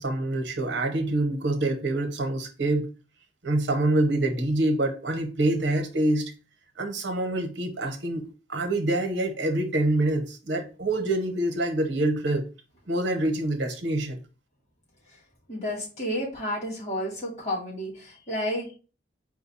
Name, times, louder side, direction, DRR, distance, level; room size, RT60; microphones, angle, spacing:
voice 1, 0.0-2.9 3.4-6.3 6.8-8.2 8.5-12.5 12.9-14.2, right 1 dB, 70° right, 0.8 m, -26 dB
voice 2, 15.5-18.7, equal, 35° left, 2.0 m, -31 dB
4.8 x 2.2 x 4.1 m
head